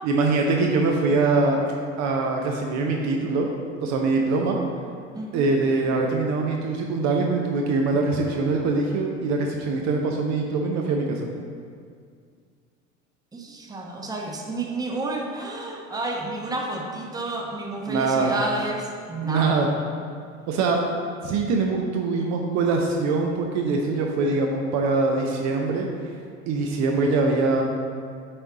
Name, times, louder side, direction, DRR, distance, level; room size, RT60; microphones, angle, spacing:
voice 1, 0.0-1.6 2.0-3.5 3.8-4.6 5.3-11.3 17.9-18.3 19.2-19.7 20.5-20.8 21.2-25.9 26.5-27.6, right 3 dB, 45° right, 1 dB, 0.8 m, -23 dB
voice 2, 5.1-5.5 13.3-19.7, right 2 dB, 10° right, 0 dB, 1.0 m, -30 dB
8.3 x 4.4 x 3.8 m, 2.2 s
figure-of-eight pair, 70°, 40 cm